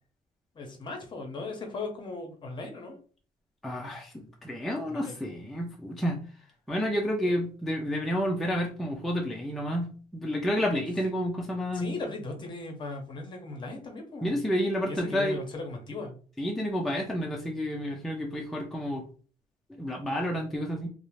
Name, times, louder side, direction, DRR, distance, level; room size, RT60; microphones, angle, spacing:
voice 1, 0.5-3.0 4.9-5.2 11.7-14.4 14.9-16.2, left 3 dB, 35° left, 3 dB, 0.7 m, -38 dB
voice 2, 3.6-4.1 4.4-6.2 6.7-11.9 14.2-15.4 16.4-19.0 19.8-20.9, equal, ahead, -1 dB, 0.3 m, -30 dB
2.5 x 2.0 x 3.0 m, 0.40 s
cardioid pair, 140°, 15 cm